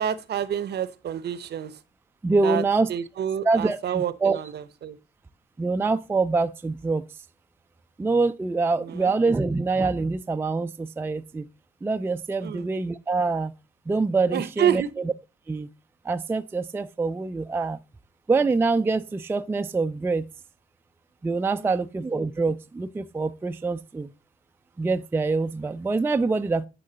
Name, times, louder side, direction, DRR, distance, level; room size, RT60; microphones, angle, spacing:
voice 1, 0.0-1.8 2.4-2.6 2.9-5.0 8.8-9.1 12.4-12.7 14.3-14.9 21.5-21.7, right 9 dB, 55° right, 0.7 m, -28 dB
voice 2, 2.2-2.9 3.4-4.4 5.6-7.0 8.0-11.5 11.8-13.5 13.9-14.8 15.5-15.7 16.0-17.8 18.3-20.3 21.2-24.1 24.8-26.7, right 3 dB, 10° right, 0.3 m, -25 dB
9.9 x 3.8 x 3.8 m
cardioid pair, 90°, 20 cm